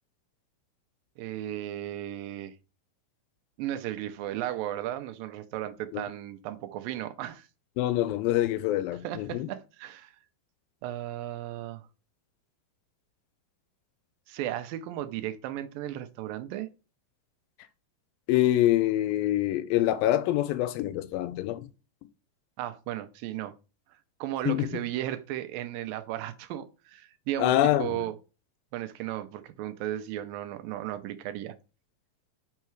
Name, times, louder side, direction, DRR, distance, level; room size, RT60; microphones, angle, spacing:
voice 1, 1.2-2.5 3.6-7.5 9.0-10.1 10.8-11.9 14.3-16.7 22.6-23.5 24.2-28.1 28.7-31.6, right 13 dB, 80° right, 2.3 m, -35 dB
voice 2, 7.8-9.5 18.3-21.6 24.5-24.7 27.4-28.0, left 14 dB, 85° left, 2.3 m, -25 dB
5.9 x 5.5 x 4.6 m
omnidirectional pair, 4.1 m